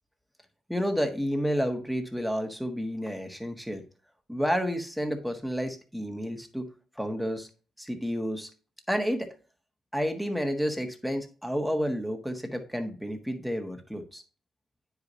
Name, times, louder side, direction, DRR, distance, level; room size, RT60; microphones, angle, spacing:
voice 1, 0.7-3.8 4.3-6.7 7.0-7.5 7.8-8.5 8.9-9.3 9.9-14.2, equal, ahead, 4 dB, 1.6 m, -30 dB
9.5 x 4.8 x 2.8 m, 0.36 s
cardioid pair, 90°, 0 cm